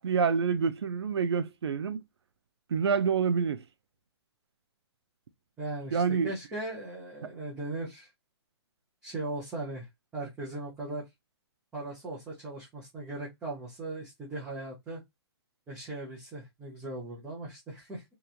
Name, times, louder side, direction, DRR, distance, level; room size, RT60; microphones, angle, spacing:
voice 1, 0.0-2.0 2.7-3.6 5.9-6.3, right 6 dB, 85° right, 0.5 m, -27 dB
voice 2, 5.6-8.1 9.0-11.1 11.7-15.0 15.7-18.0, right 2 dB, 5° right, 0.6 m, -38 dB
2.9 x 2.3 x 2.4 m
hypercardioid pair, 170°, 13 cm